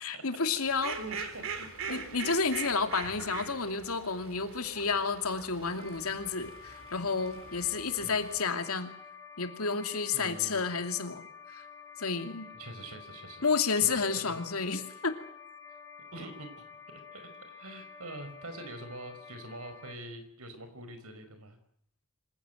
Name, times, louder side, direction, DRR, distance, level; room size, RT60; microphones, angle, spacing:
voice 1, 0.0-1.0 1.9-8.9 9.4-11.2 11.5-11.6 12.0-12.5 13.4-15.2, left 5 dB, 85° left, 7 dB, 2.7 m, -31 dB
Fowl, 0.6-8.4, right 5 dB, 70° right, 3.7 m, -42 dB
voice 2, 1.0-2.2 8.0-8.2 10.1-10.6 12.5-13.5 13.8-14.4 16.1-21.6, right 2 dB, 90° right, 8 dB, 5.2 m, -45 dB
sound 1, 5.8-20.0, left 6 dB, 15° left, 2.8 m, -49 dB
26.0 x 16.5 x 9.2 m, 0.66 s
head